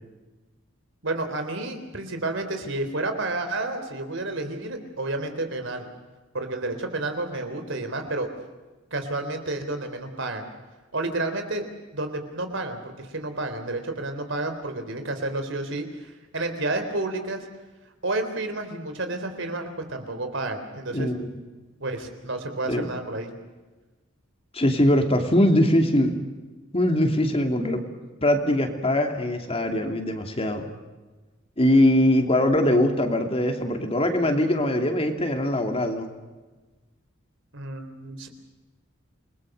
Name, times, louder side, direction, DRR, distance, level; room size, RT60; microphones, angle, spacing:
voice 1, 1.0-5.9 6.3-8.3 8.9-10.5 10.9-11.6 11.9-17.5 18.0-21.1 21.8-23.3 37.5-38.3, right 2 dB, 65° right, 7 dB, 3.8 m, -30 dB
voice 2, 20.9-21.3 22.7-22.9 24.5-26.2 26.7-27.8 28.2-30.7 31.6-36.1, left 1 dB, 30° left, 5 dB, 2.8 m, -22 dB
29.0 x 21.0 x 6.7 m, 1.2 s
head